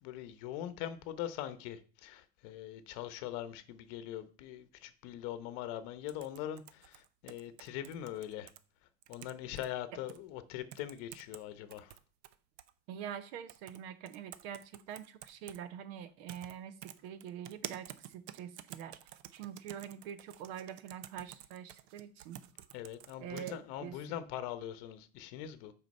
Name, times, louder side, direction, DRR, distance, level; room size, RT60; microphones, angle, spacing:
voice 1, 0.0-8.5 9.1-11.9 22.7-25.7, left 11 dB, 50° left, 1.0 m, -42 dB
sound 1, 6.1-8.6 9.0-9.7 10.1-10.2 10.7-11.4 11.7-12.7 13.5-13.8 14.1-15.6 16.3-16.5 16.8-23.5, right 13 dB, 85° right, 0.8 m, -49 dB
voice 2, 12.9-16.7 17.0-19.0 19.3-22.4 23.2-24.0, right 9 dB, 65° right, 1.1 m, -45 dB
7.9 x 5.1 x 5.4 m
cardioid pair, 175°, 32 cm